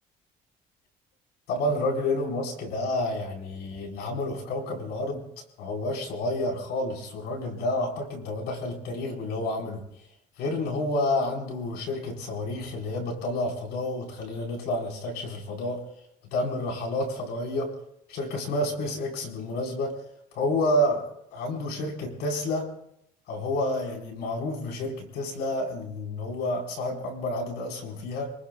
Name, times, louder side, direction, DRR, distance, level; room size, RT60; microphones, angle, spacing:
voice 1, 1.5-5.2 5.6-9.8 10.4-15.8 16.3-17.7 18.1-20.0 20.3-22.7 23.3-28.3, left 1 dB, 85° left, 1 dB, 4.4 m, -29 dB
28.0 x 20.0 x 2.3 m, 0.74 s
cardioid pair, 110°, 17 cm